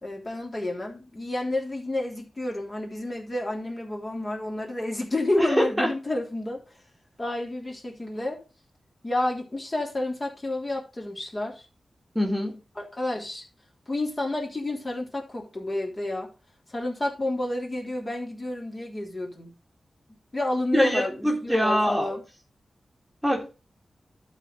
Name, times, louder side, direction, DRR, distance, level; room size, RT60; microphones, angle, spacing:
voice 1, 0.0-6.6 7.2-8.4 9.0-11.6 12.7-13.4 13.9-16.3 16.7-19.5 20.3-22.2, left 1 dB, 30° left, 3.2 m, -30 dB
voice 2, 5.4-5.9 12.2-12.6 20.7-22.1 23.2-23.5, equal, 5° right, 1.9 m, -24 dB
12.0 x 4.2 x 5.1 m
wide cardioid pair, 85°, 0 cm